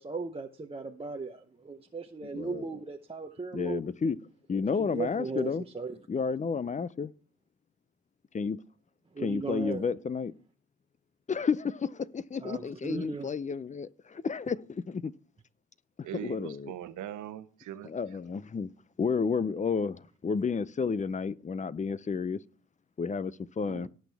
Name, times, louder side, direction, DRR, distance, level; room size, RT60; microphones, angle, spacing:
voice 1, 0.0-3.9 4.8-6.0 9.1-9.8 12.4-13.3, right 4 dB, 20° right, 0.8 m, -37 dB
voice 2, 2.3-2.7 3.5-4.2 4.5-5.6 6.1-7.1 8.3-8.6 9.2-10.3 11.3-15.1 16.1-16.7 17.8-18.7 19.0-22.4 23.0-23.9, left 5 dB, 25° left, 0.5 m, -31 dB
voice 3, 16.1-17.9 23.7-23.9, right 12 dB, 75° right, 1.0 m, -40 dB
18.0 x 6.3 x 3.4 m
cardioid pair, 90°, 30 cm